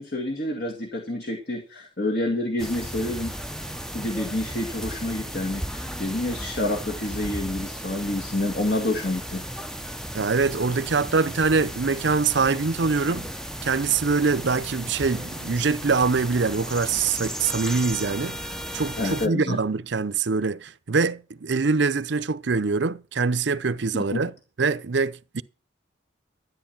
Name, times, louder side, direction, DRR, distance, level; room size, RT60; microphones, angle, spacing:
voice 1, 0.0-3.3 3.9-9.4 19.0-19.6 24.1-24.2, left 1 dB, 50° left, 2.1 m, -28 dB
sound 1, 2.6-19.3, equal, 5° left, 0.6 m, -35 dB
voice 2, 10.1-13.3 13.6-24.3 24.6-25.4, right 4 dB, 65° right, 0.6 m, -24 dB
13.0 x 9.4 x 6.0 m
head